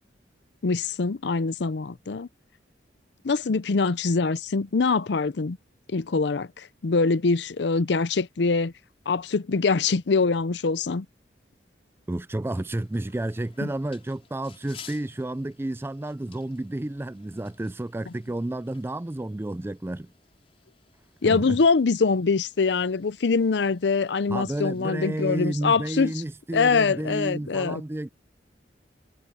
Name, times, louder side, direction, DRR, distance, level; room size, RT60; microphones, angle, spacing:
voice 1, 0.6-2.3 3.2-5.6 5.9-8.7 9.1-11.1 13.6-13.7 21.2-26.1 26.5-27.8, left 4 dB, 75° left, 0.6 m, -24 dB
voice 2, 12.1-20.1 21.2-21.6 24.3-28.1, right 1 dB, 15° right, 0.3 m, -31 dB
sound 1, 12.4-24.9, left 7 dB, 35° left, 5.4 m, -54 dB
head